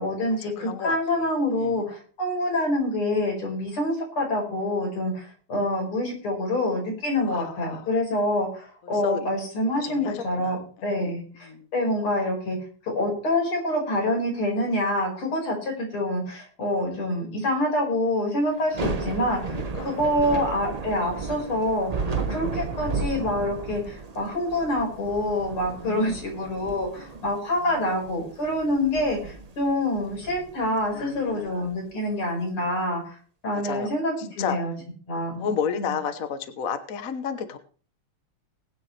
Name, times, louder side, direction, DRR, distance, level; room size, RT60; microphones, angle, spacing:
voice 1, 0.0-12.6 12.8-19.6 19.8-33.2 33.4-34.7 35.1-35.5 35.7-35.9, left 1 dB, 75° left, -1 dB, 6.0 m, -26 dB
voice 2, 0.6-1.0 1.6-1.8 7.3-7.9 9.0-9.3 9.8-10.6 10.9-11.1 11.5-11.7 19.4-19.9 20.3-20.5 25.8-26.5 27.7-27.8 30.9-31.7 32.3-32.7 33.5-33.9 34.4-34.6 35.4-37.6, left 7 dB, 50° left, 10 dB, 1.2 m, -32 dB
Thunder / Rain, 18.6-31.7, right 4 dB, 75° right, 0.3 m, -34 dB
21.0 x 9.6 x 3.3 m, 0.41 s
omnidirectional pair, 2.4 m